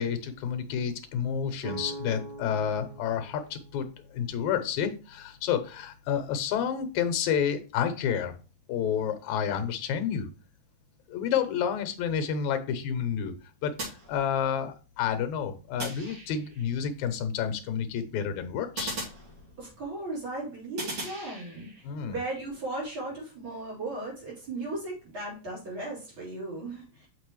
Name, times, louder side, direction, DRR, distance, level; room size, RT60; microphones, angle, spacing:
voice 1, 0.0-3.9 4.1-8.3 8.7-10.3 11.1-13.3 13.6-13.7 14.1-18.9 21.8-22.2, left 8 dB, 80° left, 9 dB, 2.2 m, -29 dB
sound 1, 1.6-5.4, right 3 dB, 75° right, 2.8 m, -44 dB
sound 2, 13.8-14.7 15.8-16.7 18.8-19.9 20.8-21.8, right 2 dB, 55° right, 4.1 m, -39 dB
voice 2, 19.6-21.7 22.0-27.1, right 2 dB, 40° right, -5 dB, 4.4 m, -36 dB
6.8 x 5.3 x 3.1 m, 0.34 s
omnidirectional pair, 3.4 m